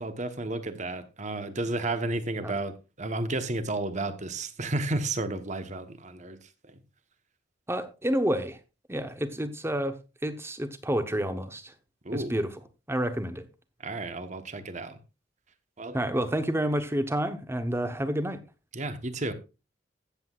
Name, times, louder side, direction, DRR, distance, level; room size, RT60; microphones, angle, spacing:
voice 1, 0.0-2.7 3.0-6.4 12.0-12.3 13.8-15.0 15.8-16.0 18.7-19.3, right 2 dB, 40° right, 1.1 m, -32 dB
voice 2, 7.7-8.6 8.9-10.0 10.2-11.7 12.1-12.5 12.9-13.4 15.9-18.4, right 1 dB, 15° right, 0.9 m, -29 dB
15.0 x 8.0 x 2.4 m
head